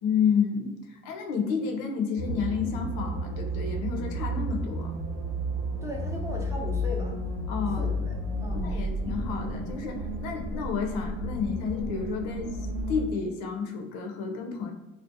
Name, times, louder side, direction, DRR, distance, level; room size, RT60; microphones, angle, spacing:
voice 1, 0.0-4.9 7.5-7.9 8.6-12.5 12.9-14.7, left 6 dB, 85° left, 2 dB, 0.6 m, -30 dB
sound 1, 2.2-13.1, equal, 85° right, 1.1 m, -32 dB
voice 2, 5.8-7.1 7.8-8.1 8.4-8.8, left 1 dB, 10° right, -1 dB, 0.5 m, -36 dB
2.5 x 2.0 x 2.6 m, 1.0 s
supercardioid pair, 75°, 33 cm